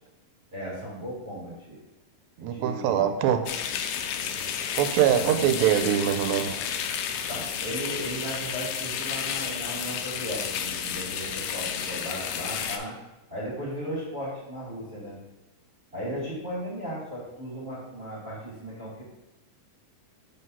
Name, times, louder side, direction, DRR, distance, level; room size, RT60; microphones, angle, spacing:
voice 1, 0.5-1.8 2.4-3.1 5.2-5.3 7.3-12.9 13.3-15.2 15.9-19.0, equal, 20° right, -10 dB, 1.9 m, -36 dB
voice 2, 2.4-3.5 4.7-6.6, right 10 dB, 85° right, 8 dB, 2.3 m, -23 dB
sound 1, 3.5-12.8, left 8 dB, 80° left, 2.0 m, -32 dB
5.3 x 3.8 x 5.4 m, 1.0 s
omnidirectional pair, 4.1 m